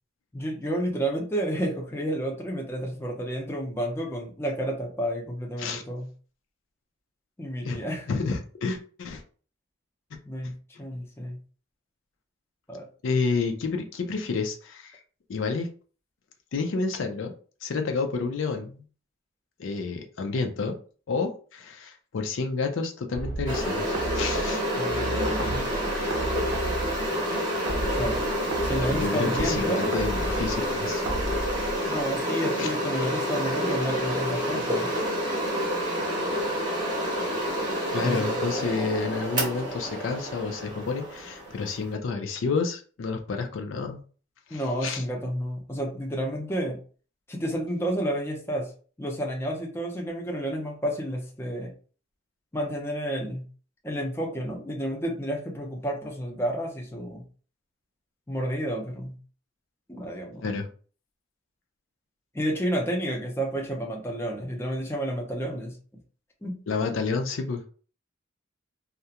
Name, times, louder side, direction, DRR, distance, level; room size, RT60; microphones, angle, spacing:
voice 1, 0.3-6.1 7.4-8.1 10.3-11.4 12.7-12.9 24.8-25.7 27.9-28.2 28.6-29.8 31.9-35.0 37.9-38.3 44.5-46.8 47.3-48.7 49.0-51.7 52.5-53.5 53.8-57.2 58.3-59.2 59.9-60.5 62.3-65.8 66.4-66.6, equal, 10° left, -1 dB, 0.5 m, -30 dB
voice 2, 7.6-9.2 13.0-15.0 15.3-15.7 16.5-17.3 17.6-18.8 19.6-20.8 21.1-24.6 28.9-31.0 32.6-32.7 37.9-44.0 44.5-45.0 60.4-60.7 66.7-67.7, left 4 dB, 70° left, 5 dB, 0.4 m, -30 dB
sound 1, 23.1-32.2, right 1 dB, 80° right, 0.6 m, -34 dB
sound 2, 23.5-41.9, equal, 20° right, 0.7 m, -28 dB
2.4 x 2.1 x 2.8 m, 0.39 s
head